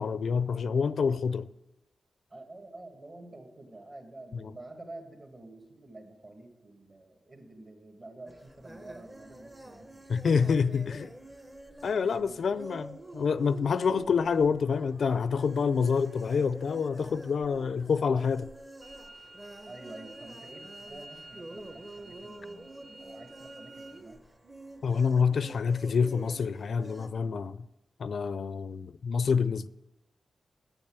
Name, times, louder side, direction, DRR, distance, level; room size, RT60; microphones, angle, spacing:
voice 1, 0.0-1.5 4.3-4.5 10.1-11.1 11.8-18.5 24.8-27.7 28.0-29.7, left 5 dB, 65° left, 0.4 m, -27 dB
voice 2, 2.3-10.0 12.0-12.6 19.6-24.2, right 2 dB, 40° right, 2.1 m, -48 dB
sound 1, 8.3-27.1, right 1 dB, 15° right, 0.7 m, -48 dB
sound 2, 18.8-24.0, right 2 dB, 80° right, 4.0 m, -51 dB
8.8 x 8.7 x 8.7 m
wide cardioid pair, 135°, 0 cm